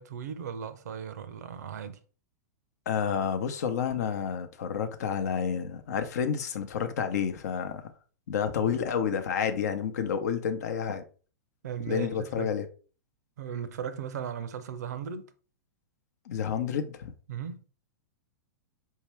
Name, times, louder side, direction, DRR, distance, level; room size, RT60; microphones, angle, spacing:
voice 1, 0.0-2.0 8.6-8.7 11.6-12.5 13.4-15.3 17.3-17.6, right 8 dB, 70° right, 0.6 m, -37 dB
voice 2, 2.9-7.9 8.3-11.0 11.9-12.6 16.3-17.1, left 7 dB, 65° left, 0.7 m, -30 dB
4.5 x 2.8 x 3.1 m
hypercardioid pair, 110°, 9 cm